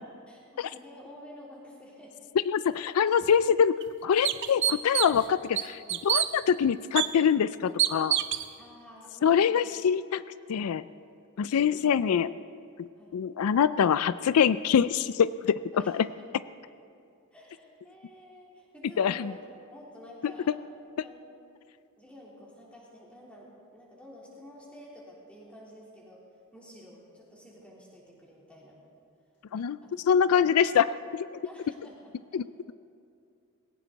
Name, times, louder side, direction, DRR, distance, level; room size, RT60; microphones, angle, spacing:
voice 1, 0.3-2.2 8.6-9.6 11.6-11.8 13.0-13.1 15.7-16.2 17.3-19.4 19.7-20.6 21.0-21.2 22.0-26.2 26.5-28.8 29.8-29.9 31.4-32.4, equal, 5° left, -5 dB, 3.6 m, -50 dB
voice 2, 2.5-3.8 4.0-8.2 9.2-10.2 10.5-10.8 11.4-12.3 12.8-12.9 13.1-16.1 19.0-19.3 29.5-29.8 30.1-31.3 32.3-32.4, left 7 dB, 90° left, 15 dB, 0.4 m, -24 dB
sound 1, 3.2-3.3 3.8-3.9 4.2-5.2 5.6-6.3 7.0-7.1 7.8-8.5, right 11 dB, 55° right, 0.6 m, -26 dB
20.0 x 18.0 x 4.0 m, 2.5 s
head